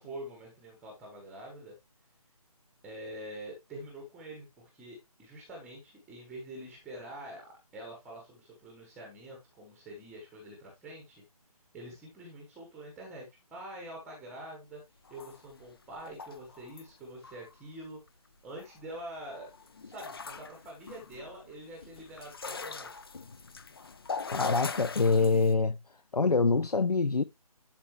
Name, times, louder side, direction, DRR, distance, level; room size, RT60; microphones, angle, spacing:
voice 1, 0.0-1.7 2.8-11.2 11.7-14.8 15.1-18.0 18.4-19.5 19.8-23.0, right 1 dB, 5° right, 1.1 m, -45 dB
sound 1, 15.1-16.9 17.2-17.6 18.1-18.2 18.3-19.0 19.3-25.5, left 4 dB, 40° left, 0.7 m, -42 dB
voice 2, 24.3-25.8 26.1-27.2, left 4 dB, 80° left, 0.5 m, -25 dB
11.5 x 4.2 x 3.0 m
figure-of-eight pair, 150°, 20 cm